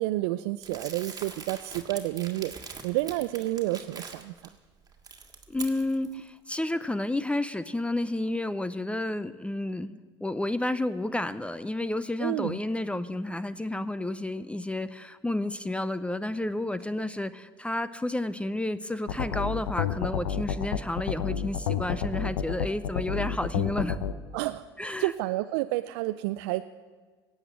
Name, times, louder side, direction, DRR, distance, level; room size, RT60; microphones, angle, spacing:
voice 1, 0.0-2.5 2.8-4.3 6.1-6.2 12.2-12.6 24.3-26.7, right 17 dB, 70° right, 11 dB, 0.4 m, -30 dB
Crumpling crinkling, 0.6-4.5 4.9-6.1, right 5 dB, 30° right, 2.0 m, -43 dB
voice 2, 5.5-24.0 24.8-25.1, left 1 dB, 10° left, 14 dB, 0.6 m, -31 dB
sound 1, 19.1-24.1, left 8 dB, 80° left, 0.8 m, -29 dB
17.5 x 8.0 x 7.5 m, 1.4 s
hypercardioid pair, 70°, 14 cm